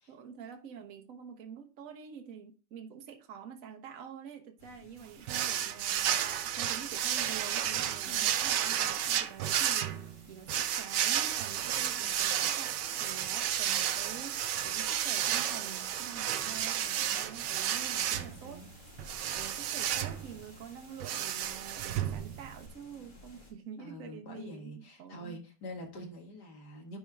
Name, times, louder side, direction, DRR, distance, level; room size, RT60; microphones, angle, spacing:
voice 1, 0.1-18.6 19.3-25.4, right 7 dB, 55° right, 1.3 m, -47 dB
sound 1, 4.6-23.5, left 2 dB, 30° left, 1.9 m, -56 dB
sound 2, 5.3-22.7, right 10 dB, 80° right, 1.3 m, -32 dB
voice 2, 8.0-8.4 12.0-12.1 18.1-18.7 23.8-27.0, equal, 65° left, 2.2 m, -46 dB
10.5 x 4.5 x 3.5 m
omnidirectional pair, 1.9 m